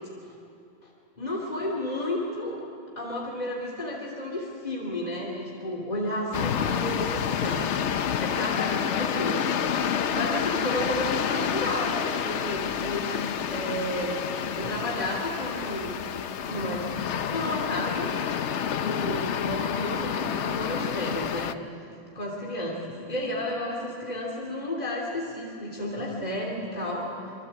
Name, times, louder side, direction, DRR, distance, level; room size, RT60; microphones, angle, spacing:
voice 1, 1.2-2.6 2.9-9.4 10.1-13.2 13.5-16.0 16.5-16.9 17.2-18.1 18.7-21.5 22.1-27.1, left 1 dB, 35° left, -2 dB, 3.3 m, -32 dB
sound 1, 6.3-21.5, left 8 dB, 70° left, 1.1 m, -29 dB
27.0 x 23.5 x 8.4 m, 2.5 s
omnidirectional pair, 1.3 m